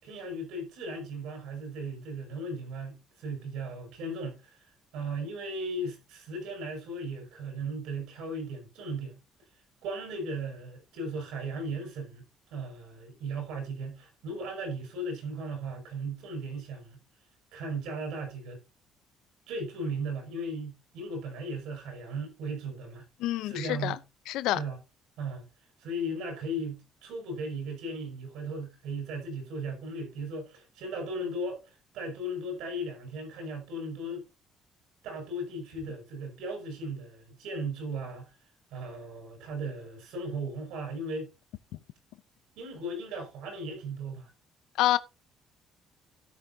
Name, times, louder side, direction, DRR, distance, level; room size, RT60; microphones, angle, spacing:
voice 1, 0.0-4.6 4.9-9.2 9.8-12.3 12.5-17.0 17.5-18.6 19.5-23.1 23.4-24.0 24.5-24.8 25.2-25.4 25.8-34.2 35.0-38.3 38.7-41.3 42.6-44.3, right 1 dB, 85° right, 6.1 m, -36 dB
voice 2, 23.2-24.0 24.3-24.6 44.8-45.0, left 14 dB, 90° left, 0.6 m, -27 dB
13.0 x 9.8 x 2.8 m
cardioid pair, 145°, 0 cm